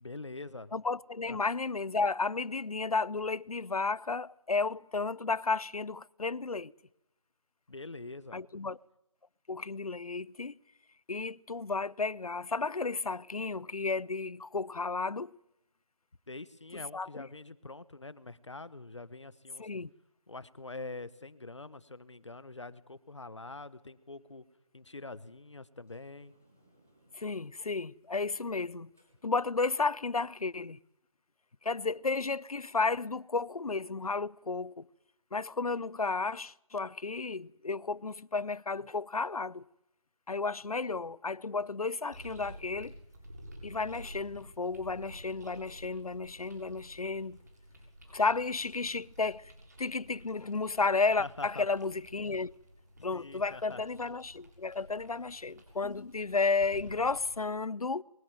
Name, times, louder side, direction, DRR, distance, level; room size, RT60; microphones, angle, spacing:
voice 1, 0.0-0.7 1.3-1.4 7.7-8.4 16.3-19.7 20.3-24.5 24.7-26.4 51.2-51.7 53.0-53.8, left 3 dB, 50° left, 1.3 m, -45 dB
voice 2, 0.7-6.7 8.3-8.8 9.5-10.6 11.1-15.3 16.9-17.2 19.6-19.9 27.1-28.9 29.2-30.8 31.6-34.9 35.3-39.6 40.3-42.9 43.6-47.4 48.1-49.5 49.8-52.6 53.0-58.0, left 4 dB, 80° left, 0.7 m, -33 dB
Sliding door, 25.8-31.0, right 1 dB, 5° left, 0.8 m, -70 dB
sound 1, 42.1-57.4, equal, 30° right, 6.7 m, -52 dB
22.5 x 16.0 x 9.2 m
figure-of-eight pair, 175°, 19 cm